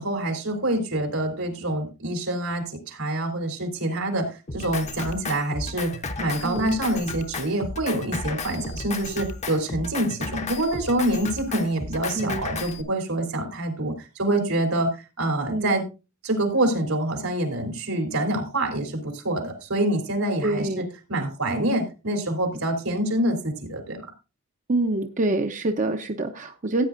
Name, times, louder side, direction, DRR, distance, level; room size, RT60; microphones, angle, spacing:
voice 1, 0.0-5.9 6.2-14.9 15.2-15.8 16.2-24.1, right 1 dB, 85° right, 5 dB, 3.5 m, -26 dB
Drum kit, 4.5-12.8, left 3 dB, 35° left, 0.8 m, -34 dB
voice 2, 20.4-20.8 21.5-21.7 24.7-26.8, right 2 dB, 35° right, 6 dB, 0.8 m, -26 dB
15.0 x 9.3 x 2.6 m, 0.29 s
head